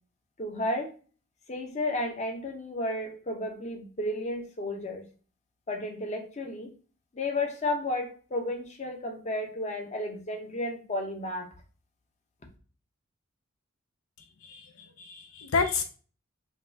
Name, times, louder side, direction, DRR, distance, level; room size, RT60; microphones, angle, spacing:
voice 1, 0.4-0.9 1.5-5.0 5.7-6.7 7.1-11.5, left 1 dB, 35° left, 3 dB, 0.7 m, -32 dB
voice 2, 14.4-15.8, left 5 dB, 80° left, 6 dB, 0.5 m, -30 dB
5.2 x 2.3 x 2.6 m, 0.39 s
head